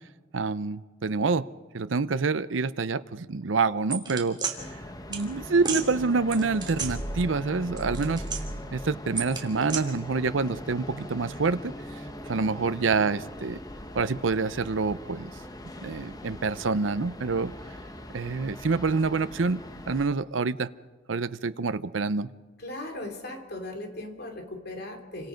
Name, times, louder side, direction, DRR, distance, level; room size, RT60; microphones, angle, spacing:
voice 1, 0.3-1.5 1.7-4.7 5.1-8.2 8.7-12.0 12.3-13.6 13.9-15.3 15.8-17.5 18.1-20.7 21.1-22.3, right 4 dB, 90° right, 13 dB, 0.7 m, -27 dB
sound 1, 3.9-4.5 5.1-5.2 5.6-5.8 6.3-7.4 7.7-8.7 9.2-9.8, right 4 dB, 25° right, 3.1 m, -32 dB
sound 2, 4.6-20.1, left 1 dB, 20° left, 1.2 m, -41 dB
voice 2, 22.6-25.3, left 1 dB, 60° left, 4 dB, 3.2 m, -38 dB
29.0 x 25.5 x 5.2 m, 1.3 s
head